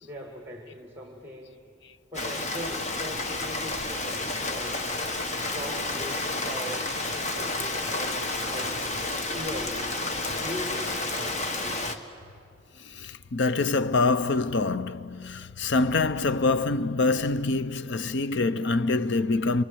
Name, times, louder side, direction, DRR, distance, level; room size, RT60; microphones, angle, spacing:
voice 1, 0.0-1.6 2.1-4.9 5.5-8.9 9.3-10.0 10.4-12.0, left 1 dB, 15° right, 2.1 m, -40 dB
Rain, 2.1-12.0, left 2 dB, 40° left, 1.5 m, -30 dB
voice 2, 12.9-19.6, left 3 dB, 65° left, 0.6 m, -25 dB
26.5 x 23.5 x 8.6 m
head